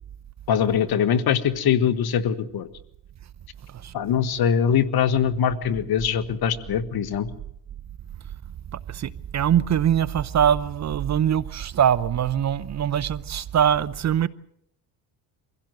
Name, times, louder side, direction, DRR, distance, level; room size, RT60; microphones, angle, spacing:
voice 1, 0.5-2.7 3.9-7.3, left 8 dB, 65° left, 1.7 m, -22 dB
voice 2, 8.7-14.3, right 9 dB, 40° right, 0.8 m, -23 dB
24.0 x 16.0 x 8.0 m
supercardioid pair, 80°, 41 cm